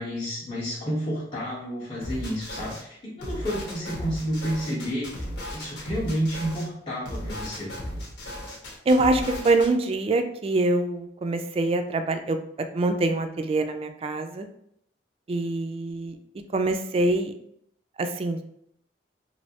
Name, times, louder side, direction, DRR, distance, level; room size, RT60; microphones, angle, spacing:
voice 1, 0.0-7.7, equal, 25° left, -7 dB, 0.7 m, -30 dB
sound 1, 2.0-2.8 3.2-6.7 7.0-9.7, left 1 dB, 85° left, 0.9 m, -36 dB
voice 2, 8.9-14.5 15.3-16.2 16.5-17.3 18.0-18.4, right 2 dB, 35° right, 7 dB, 0.3 m, -24 dB
3.1 x 2.6 x 2.8 m, 0.71 s
head